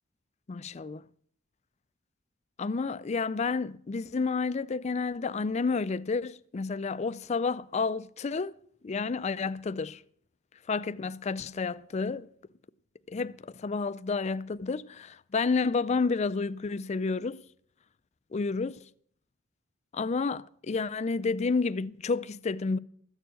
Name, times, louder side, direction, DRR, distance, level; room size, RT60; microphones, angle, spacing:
voice 1, 0.5-1.0 2.6-8.5 8.8-10.0 10.7-12.3 13.1-17.4 18.3-18.8 19.9-22.8, left 4 dB, 35° left, 0.4 m, -30 dB
13.5 x 6.9 x 7.5 m
head